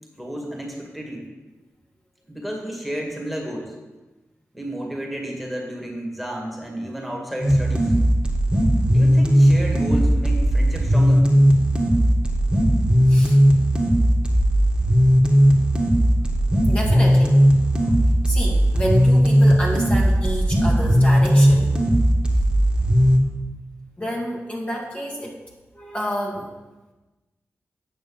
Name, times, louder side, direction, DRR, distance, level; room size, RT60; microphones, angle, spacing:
voice 1, 0.2-1.3 2.3-3.8 4.5-8.0 8.9-11.2, right 1 dB, ahead, -1 dB, 2.2 m, -32 dB
sound 1, 7.4-23.2, equal, 15° right, 1.9 m, -17 dB
voice 2, 16.7-17.4 17.8-17.9 18.3-21.7 24.0-25.4 25.7-26.5, equal, 25° left, -3 dB, 2.0 m, -29 dB
9.1 x 6.1 x 5.4 m, 1.1 s
cardioid pair, 55°, 5 cm